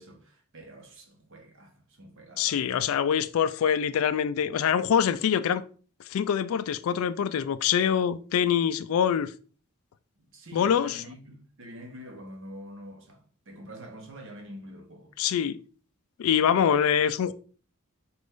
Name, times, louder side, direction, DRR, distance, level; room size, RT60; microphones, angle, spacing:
voice 1, 0.0-2.8 10.1-15.1, equal, 60° right, 0.9 m, -46 dB
voice 2, 2.4-5.6 6.1-9.3 10.5-11.0 15.2-15.6 16.2-17.3, left 8 dB, 65° left, 0.3 m, -24 dB
4.2 x 2.5 x 3.5 m
head